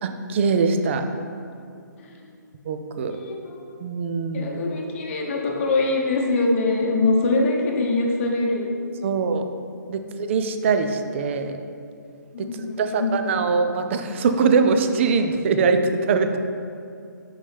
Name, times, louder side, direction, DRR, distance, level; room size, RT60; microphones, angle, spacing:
voice 1, 0.0-1.0 2.7-3.1 3.8-4.6 9.0-9.4 9.9-10.0 10.3-11.6 12.4-16.4, right 5 dB, 40° right, 7 dB, 0.4 m, -22 dB
voice 2, 3.1-3.6 4.3-8.7 9.9-10.1 12.3-13.4, left 2 dB, 40° left, -1 dB, 0.9 m, -23 dB
5.4 x 5.2 x 3.3 m, 2.4 s
hypercardioid pair, 150°, 11 cm